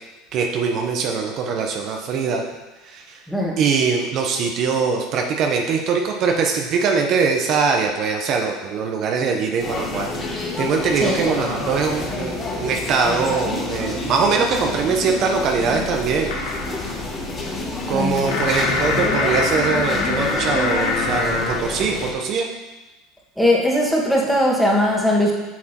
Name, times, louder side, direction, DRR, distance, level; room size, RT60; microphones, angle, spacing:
voice 1, 0.3-2.4 2.8-3.2 3.6-10.1 10.4-16.6 17.9-22.5, right 5 dB, 55° right, 2 dB, 0.8 m, -22 dB
voice 2, 3.3-3.6 11.0-11.1 17.9-18.5 23.4-25.3, left 1 dB, ahead, -3 dB, 1.7 m, -19 dB
sound 1, 9.6-22.1, left 2 dB, 30° left, 1.7 m, -28 dB
sound 2, 16.3-21.6, left 3 dB, 70° left, 1.1 m, -24 dB
8.4 x 6.4 x 2.9 m, 1.2 s
supercardioid pair, 100°, 0 cm